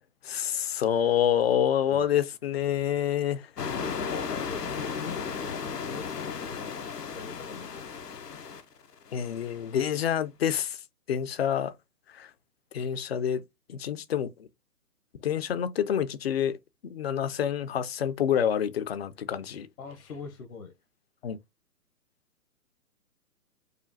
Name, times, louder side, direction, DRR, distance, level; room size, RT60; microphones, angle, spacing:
voice 1, 0.2-3.5 9.1-10.8 11.1-11.7 12.1-12.3 12.7-13.4 13.7-14.5 15.2-16.6 16.8-19.7 21.2-21.4, left 9 dB, 40° left, 0.5 m, -27 dB
sound 1, 3.6-9.7, left 6 dB, 85° left, 0.9 m, -35 dB
voice 2, 3.8-8.1 19.8-20.7, left 5 dB, 60° left, 1.0 m, -43 dB
4.9 x 2.4 x 2.6 m
hypercardioid pair, 140°, 47 cm